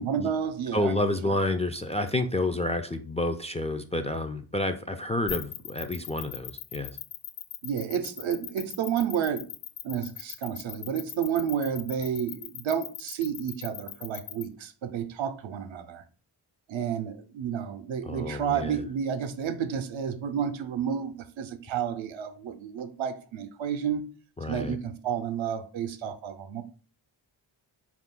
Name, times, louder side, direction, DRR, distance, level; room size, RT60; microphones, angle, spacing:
voice 1, 0.0-0.9 7.6-9.5 9.8-16.0 16.7-24.0 24.5-26.6, right 8 dB, 70° right, 0.6 m, -31 dB
voice 2, 0.7-7.0 18.0-18.8 24.4-24.8, left 2 dB, 15° left, 0.3 m, -29 dB
sound 1, 5.3-14.4, left 10 dB, 70° left, 0.6 m, -38 dB
3.8 x 2.5 x 3.6 m
cardioid pair, 40°, 48 cm